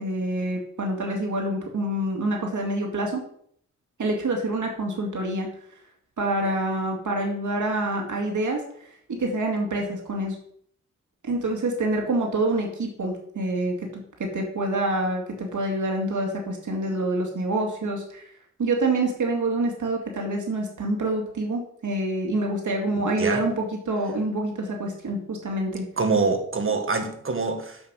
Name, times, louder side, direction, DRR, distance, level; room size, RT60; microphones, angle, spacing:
voice 1, 0.0-3.2 4.0-5.5 6.2-8.6 9.2-10.4 11.2-18.3 18.6-25.9, right 2 dB, 80° right, 2.4 m, -26 dB
voice 2, 22.9-23.4 26.0-27.8, right 4 dB, 45° right, 1.8 m, -25 dB
7.9 x 7.0 x 6.3 m
wide cardioid pair, 105°, 30 cm